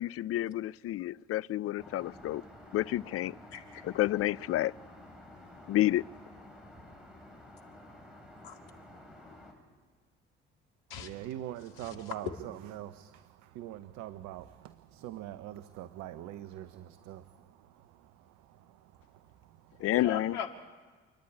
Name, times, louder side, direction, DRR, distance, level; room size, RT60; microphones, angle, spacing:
voice 1, 0.0-2.4 2.7-3.3 3.8-4.7 5.7-6.1 19.8-20.4, left 14 dB, 50° left, 0.5 m, -29 dB
Aircraft, 1.8-9.5, left 1 dB, ahead, 7.4 m, -51 dB
voice 2, 3.5-3.8 8.4-8.6 10.9-11.1 11.8-12.1 19.9-20.5, left 8 dB, 85° left, 2.1 m, -39 dB
voice 3, 10.9-19.9, right 13 dB, 70° right, 0.9 m, -44 dB
27.5 x 10.5 x 9.6 m
hypercardioid pair, 55°, 30 cm